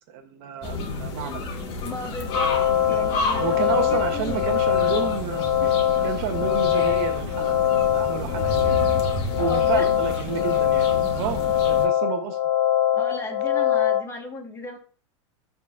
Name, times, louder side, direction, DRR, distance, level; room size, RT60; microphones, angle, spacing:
voice 1, 0.1-1.4 3.4-7.6 7.9-8.8 9.4-11.4 11.7-12.4, right 8 dB, 55° right, 7 dB, 0.9 m, -30 dB
sound 1, 0.6-11.9, left 2 dB, 35° left, 1.8 m, -30 dB
voice 2, 1.8-2.5 2.8-4.5 9.4-9.9 12.9-14.8, left 2 dB, 15° left, 2 dB, 1.5 m, -35 dB
sound 2, 2.2-14.0, left 11 dB, 60° left, 1.6 m, -23 dB
11.5 x 3.9 x 2.5 m, 0.40 s
supercardioid pair, 145°, 15 cm